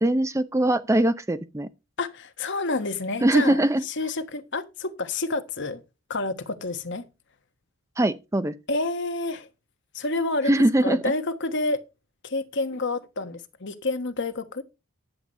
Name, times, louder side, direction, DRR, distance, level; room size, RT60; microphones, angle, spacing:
voice 1, 0.0-1.7 3.2-3.8 8.0-8.5 10.4-11.0, right 1 dB, 15° right, 0.5 m, -21 dB
voice 2, 2.0-3.6 3.9-5.8 6.1-7.1 8.7-9.5 9.9-10.5 10.8-11.8 12.2-14.6, left 2 dB, 55° left, 1.3 m, -29 dB
10.5 x 7.8 x 5.4 m
head